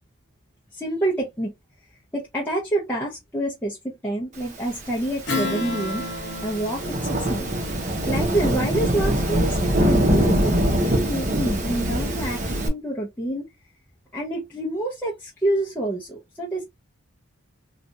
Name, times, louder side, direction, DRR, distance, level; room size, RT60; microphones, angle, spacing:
voice 1, 0.7-1.5 2.1-6.0 6.4-13.5 14.1-16.6, right 1 dB, 10° left, 0.7 m, -28 dB
Thunderstorm / Rain, 5.0-12.7, equal, 35° right, 0.9 m, -23 dB
Strum, 5.3-10.2, left 2 dB, 55° left, 1.0 m, -33 dB
3.2 x 2.4 x 2.7 m
head